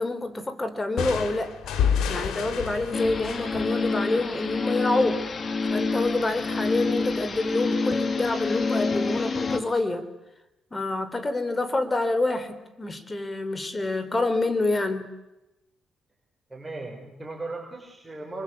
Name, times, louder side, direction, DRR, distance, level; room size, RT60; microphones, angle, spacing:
voice 1, 0.0-1.7 2.1-5.3 5.6-10.1 10.7-15.1, left 2 dB, 20° left, 10 dB, 3.5 m, -27 dB
sound 1, 1.0-4.6, left 7 dB, 80° left, 3.1 m, -29 dB
sound 2, 2.9-9.6, left 3 dB, 40° left, 2.4 m, -27 dB
voice 2, 16.5-18.4, right 2 dB, 15° right, -1 dB, 6.4 m, -37 dB
27.5 x 24.0 x 8.6 m, 0.97 s
cardioid pair, 90°, 0 cm